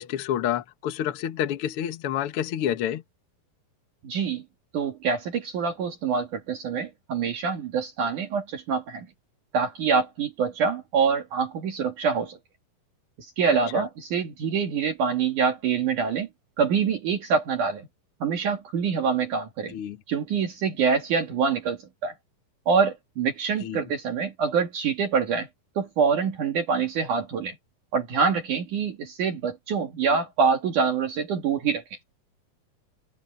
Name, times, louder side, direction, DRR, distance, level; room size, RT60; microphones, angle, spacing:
voice 1, 0.0-3.0 13.7-13.8 19.7-20.0 23.6-23.8, left 10 dB, 75° left, 1.3 m, -28 dB
voice 2, 4.0-4.4 4.7-9.1 9.5-12.4 13.2-16.3 16.6-17.9 18.2-19.7 20.1-22.1 22.7-25.5 25.8-27.5 27.9-31.8, right 5 dB, 60° right, 3.4 m, -25 dB
omnidirectional pair, 4.2 m